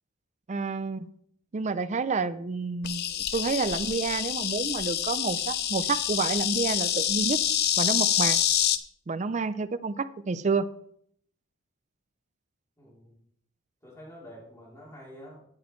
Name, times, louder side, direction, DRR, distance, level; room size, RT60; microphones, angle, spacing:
voice 1, 0.5-1.1 1.5-7.4 7.8-8.4 9.1-10.7, right 4 dB, 35° right, 13 dB, 0.4 m, -29 dB
Insect, 2.8-8.8, left 10 dB, 50° left, 0.6 m, -27 dB
voice 2, 12.8-13.1 13.8-15.4, equal, 15° left, -6 dB, 3.3 m, -47 dB
17.0 x 6.2 x 3.1 m, 0.67 s
head